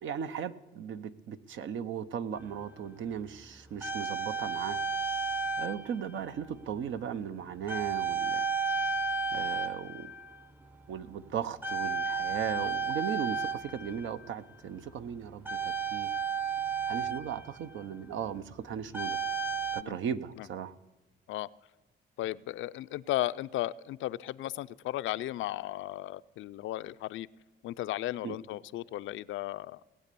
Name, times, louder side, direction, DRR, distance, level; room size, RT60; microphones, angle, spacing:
voice 1, 0.0-4.8 5.6-8.5 9.3-10.1 10.9-16.1 16.9-19.2 19.7-20.7 28.2-28.4, right 8 dB, 75° right, 12 dB, 0.8 m, -37 dB
sound 1, 2.4-2.5 3.4-6.0 6.2-6.5 7.7-10.4 10.7-11.1 11.6-14.3 15.5-17.8 18.9-19.8, right 5 dB, 10° right, 0.6 m, -33 dB
voice 2, 22.2-27.3 27.6-29.8, left 15 dB, 75° left, 14 dB, 0.5 m, -35 dB
18.5 x 8.6 x 6.8 m, 1.1 s
cardioid pair, 90°, 20 cm